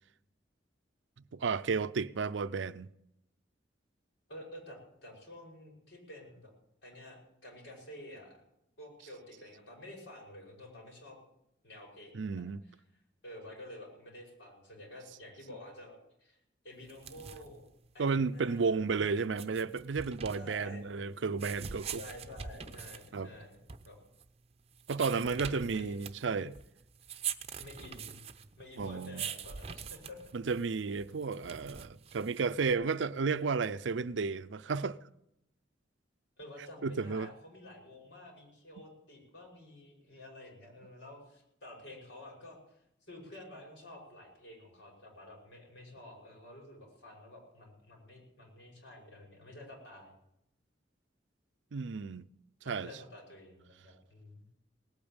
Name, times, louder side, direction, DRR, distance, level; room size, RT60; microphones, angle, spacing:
voice 1, 1.3-2.9 12.1-12.6 18.0-22.0 23.1-23.3 24.9-26.5 28.8-29.2 30.3-35.0 36.8-37.3 51.7-52.3 52.7-52.9, right 4 dB, 75° right, 0.5 m, -32 dB
voice 2, 4.3-6.5 6.8-8.4 8.8-11.2 11.6-12.8 13.2-16.4 16.6-17.7 17.9-19.6 20.3-21.2 22.0-23.6 23.9-24.0 25.1-26.0 27.6-28.2 28.6-30.2 36.4-50.1 52.6-54.6, left 1 dB, 75° left, 5.8 m, -50 dB
sound 1, 16.8-32.7, right 7 dB, 35° right, 0.7 m, -44 dB
18.5 x 8.6 x 8.9 m
head